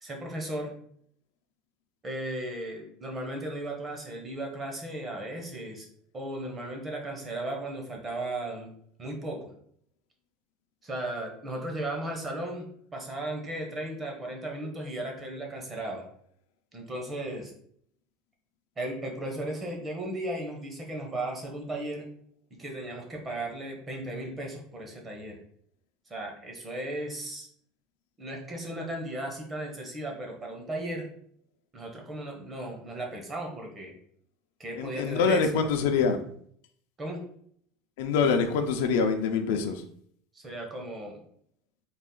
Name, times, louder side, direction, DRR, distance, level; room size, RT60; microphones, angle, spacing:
voice 1, 0.0-0.7 2.0-5.9 6.1-8.7 9.0-9.5 10.8-12.6 12.9-16.0 16.7-17.5 18.8-22.1 22.5-25.4 26.1-27.5 28.2-31.1 31.7-33.9 34.6-35.5 37.0-37.2 40.3-41.2, right 1 dB, 20° right, 1 dB, 0.8 m, -36 dB
voice 2, 34.8-36.2 38.0-39.8, left 5 dB, 80° left, 6 dB, 0.5 m, -25 dB
4.0 x 2.4 x 3.7 m, 0.63 s
cardioid pair, 165°, 0 cm